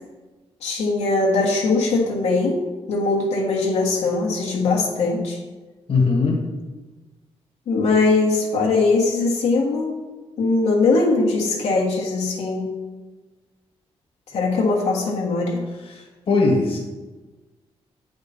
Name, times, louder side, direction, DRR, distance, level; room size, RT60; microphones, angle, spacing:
voice 1, 0.6-2.6 2.9-5.4 7.7-9.9 10.4-12.7 14.3-15.6, left 3 dB, 90° left, -3 dB, 1.6 m, -21 dB
voice 2, 5.9-6.4 15.9-16.8, left 3 dB, 60° left, -1 dB, 1.5 m, -20 dB
8.1 x 5.2 x 4.2 m, 1.2 s
cardioid pair, 110°, 11 cm